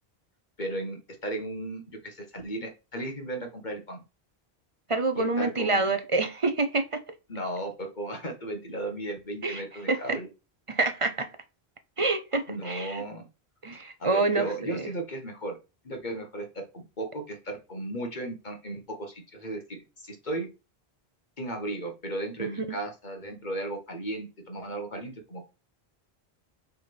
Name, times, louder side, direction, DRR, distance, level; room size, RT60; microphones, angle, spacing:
voice 1, 0.6-4.0 5.1-5.8 7.3-10.3 12.5-13.3 14.0-15.6 15.8-19.8 20.0-20.5 21.4-25.5, right 1 dB, 45° left, 1.7 m, -35 dB
voice 2, 4.9-7.0 9.4-9.6 9.9-10.2 10.7-11.3 12.0-13.0 13.6-14.9 22.4-22.5, right 3 dB, 35° right, 0.8 m, -27 dB
6.4 x 3.7 x 6.0 m
omnidirectional pair, 1.1 m